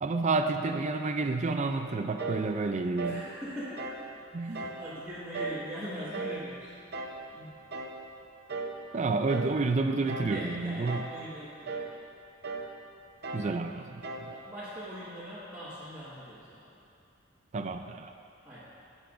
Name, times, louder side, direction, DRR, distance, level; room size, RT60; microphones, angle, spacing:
voice 1, 0.0-3.2 4.3-4.6 8.9-11.0 13.3-14.3 17.5-18.1, right 3 dB, 35° right, 6 dB, 0.4 m, -30 dB
sound 1, 2.2-2.5 3.0-3.3 3.8-4.1 4.5-4.8 5.3-5.7 6.1-6.4 6.9-7.2 7.7-8.0 8.5-8.8 9.3-9.6 10.1-10.4 10.9-11.2 11.7-11.9 12.4-12.7 13.2-13.5 14.0-14.3, right 3 dB, 55° right, 0.8 m, -37 dB
voice 2, 3.0-3.9 4.4-6.7 7.3-7.6 10.3-11.8 14.3-16.7 18.5-18.6, equal, 10° right, -12 dB, 1.7 m, -41 dB
16.5 x 8.1 x 2.6 m, 2.6 s
head